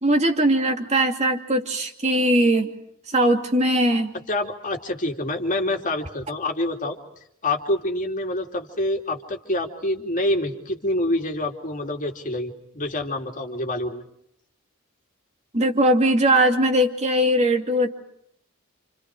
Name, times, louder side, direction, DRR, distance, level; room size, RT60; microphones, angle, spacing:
voice 1, 0.0-2.7 3.1-4.1 15.5-17.9, right 1 dB, 30° right, 4 dB, 2.5 m, -20 dB
voice 2, 4.3-7.0 7.4-14.0, left 1 dB, 40° left, 3 dB, 2.8 m, -26 dB
29.5 x 28.0 x 4.9 m, 0.73 s
head